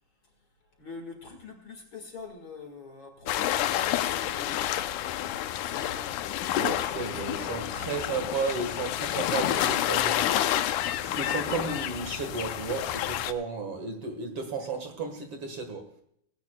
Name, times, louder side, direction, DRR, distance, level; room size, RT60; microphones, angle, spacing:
voice 1, 0.8-6.2 7.0-7.8 10.2-10.7, left 3 dB, 45° left, 2.3 m, -46 dB
sound 1, 3.3-13.3, left 12 dB, 85° left, 2.2 m, -29 dB
voice 2, 6.5-10.3 11.0-15.8, right 4 dB, 55° right, 2.3 m, -33 dB
19.0 x 16.5 x 2.3 m
omnidirectional pair, 3.5 m